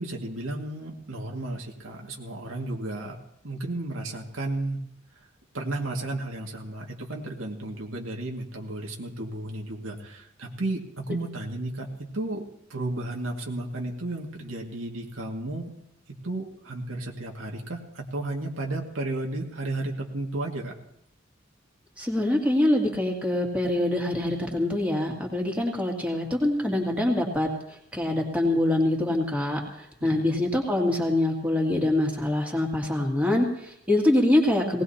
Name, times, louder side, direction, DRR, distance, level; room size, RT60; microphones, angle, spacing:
voice 1, 0.0-3.2 3.4-4.8 5.5-11.9 12.1-12.4 12.7-15.7 16.2-20.8 30.0-30.2, right 2 dB, 90° right, 0 dB, 2.2 m, -33 dB
voice 2, 22.0-27.5 27.9-34.8, left 1 dB, 5° right, -2 dB, 2.6 m, -24 dB
19.0 x 19.0 x 2.9 m, 0.75 s
head